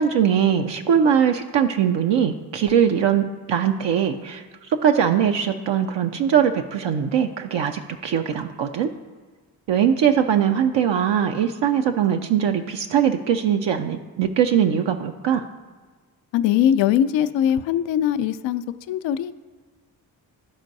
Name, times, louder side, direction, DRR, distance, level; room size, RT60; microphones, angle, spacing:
voice 1, 0.0-4.4 4.8-8.9 9.7-15.4, right 8 dB, 60° right, 5 dB, 0.6 m, -21 dB
voice 2, 16.3-18.6 18.9-19.3, left 10 dB, 65° left, 10 dB, 0.5 m, -21 dB
12.0 x 4.4 x 2.7 m, 1.4 s
supercardioid pair, 40°, 50 cm